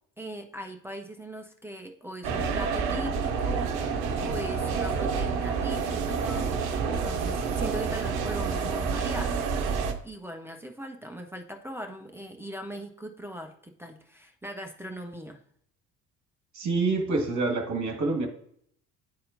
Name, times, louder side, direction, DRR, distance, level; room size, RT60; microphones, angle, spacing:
voice 1, 0.2-6.6 7.0-9.4 10.0-15.4, right 1 dB, 5° right, 2 dB, 0.5 m, -40 dB
sound 1, 2.2-9.9, right 5 dB, 60° right, 0.8 m, -28 dB
voice 2, 16.5-18.3, right 3 dB, 35° right, 4 dB, 1.4 m, -27 dB
10.5 x 4.2 x 2.5 m, 0.66 s
figure-of-eight pair, 55°, 49 cm